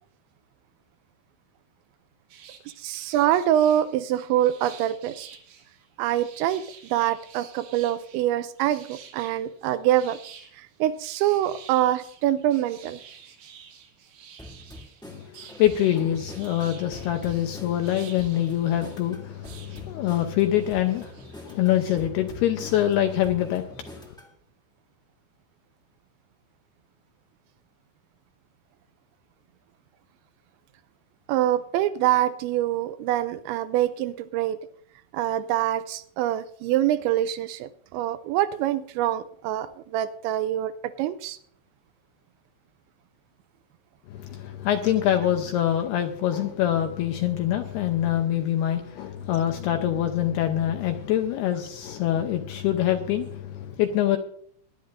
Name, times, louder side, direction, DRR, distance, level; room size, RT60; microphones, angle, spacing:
sound 1, 2.3-22.0, right 7 dB, 60° right, 2.9 m, -50 dB
voice 1, 2.8-5.3 6.0-6.6 6.9-10.2 10.5-13.0 31.3-34.6 35.1-41.4, right 12 dB, 80° right, 2.8 m, -25 dB
sound 2, 14.4-24.3, equal, 5° left, 0.3 m, -45 dB
voice 2, 15.1-24.1 44.1-54.2, left 11 dB, 80° left, 2.4 m, -25 dB
21.0 x 11.5 x 2.6 m
omnidirectional pair, 5.4 m